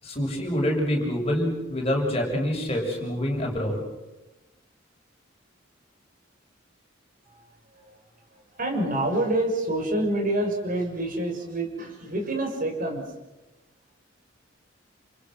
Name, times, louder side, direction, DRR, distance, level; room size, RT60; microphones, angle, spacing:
voice 1, 0.0-3.8, equal, 30° left, 0 dB, 7.2 m, -26 dB
voice 2, 7.2-8.0 8.3-13.0, right 1 dB, 45° right, 2 dB, 6.1 m, -28 dB
29.5 x 28.5 x 6.5 m, 1.0 s
head